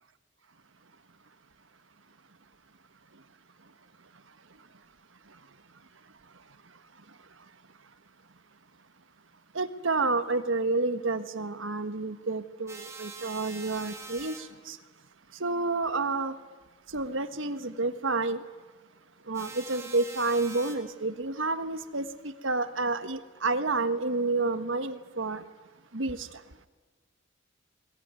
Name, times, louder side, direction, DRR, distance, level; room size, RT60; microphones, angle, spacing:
voice 1, 9.5-14.8 15.4-16.3 16.9-18.4 19.3-25.4 25.9-26.3, right 3 dB, 65° right, 1.5 m, -29 dB
sound 1, 12.7-14.4 19.3-20.7, right 4 dB, 15° right, 3.0 m, -44 dB
21.5 x 21.0 x 9.7 m
head